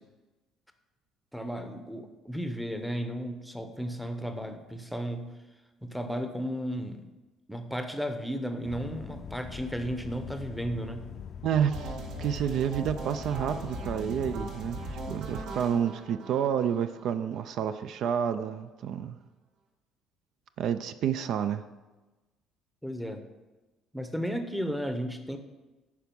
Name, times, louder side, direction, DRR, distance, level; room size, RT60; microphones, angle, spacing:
voice 1, 1.3-5.3 5.8-7.1 7.5-11.1 22.8-23.2 23.9-25.4, equal, ahead, 6 dB, 0.7 m, -34 dB
sound 1, 8.6-15.2, left 8 dB, 40° left, 0.5 m, -43 dB
voice 2, 11.4-19.2 20.6-21.7, right 8 dB, 55° right, 11 dB, 0.4 m, -29 dB
sound 2, 11.7-17.7, right 3 dB, 75° right, 1.9 m, -40 dB
10.5 x 4.8 x 6.9 m, 1.2 s
cardioid pair, 160°, 0 cm